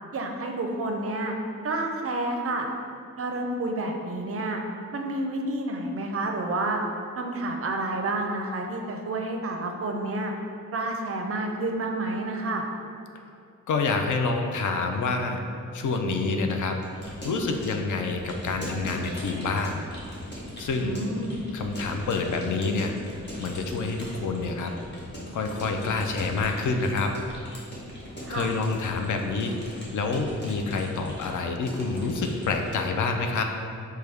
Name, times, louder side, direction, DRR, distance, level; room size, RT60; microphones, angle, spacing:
voice 1, 0.1-1.3 1.6-2.7 3.2-4.6 4.9-6.8 7.2-10.3 10.7-12.6 20.8-21.4 28.2-28.5, right 2 dB, 45° right, 2 dB, 0.4 m, -29 dB
voice 2, 13.7-15.4 15.7-16.8 17.2-19.8 20.6-21.0 21.5-22.9 23.4-24.7 25.3-27.1 28.3-33.4, left 3 dB, 65° left, 4 dB, 0.5 m, -27 dB
Keyboard (musical) / Computer keyboard, 16.7-32.8, equal, 35° left, 1.0 m, -40 dB
6.1 x 2.2 x 3.4 m, 2.5 s
wide cardioid pair, 145°, 32 cm